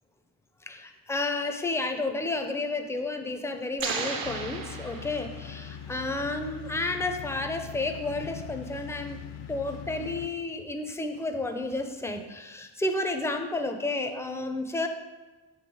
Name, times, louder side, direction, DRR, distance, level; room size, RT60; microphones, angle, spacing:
voice 1, 0.7-9.2 9.5-14.9, left 2 dB, 5° left, 6 dB, 0.4 m, -31 dB
sound 1, 3.8-5.7, right 5 dB, 55° right, 0.6 m, -35 dB
sound 2, 4.2-10.3, left 8 dB, 70° left, 0.6 m, -41 dB
sound 3, 6.1-6.2 6.7-7.7 8.2-9.3 9.7-12.2, right 4 dB, 85° right, 1.2 m, -55 dB
7.0 x 3.2 x 4.7 m, 1.3 s
wide cardioid pair, 120°, 43 cm